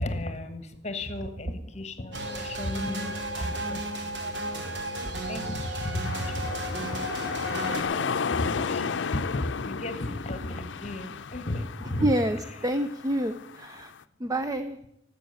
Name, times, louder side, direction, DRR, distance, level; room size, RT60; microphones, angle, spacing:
voice 1, 0.0-7.1 7.4-12.1 12.5-12.6, left 1 dB, 40° left, 9 dB, 1.2 m, -35 dB
sound 1, 2.1-7.8, right 1 dB, 75° right, 2.2 m, -34 dB
sound 2, 6.0-14.0, left 5 dB, 90° left, 0.5 m, -33 dB
voice 2, 12.0-13.9 14.2-14.8, right 1 dB, 20° right, 10 dB, 0.4 m, -28 dB
12.0 x 8.2 x 9.3 m, 0.86 s
head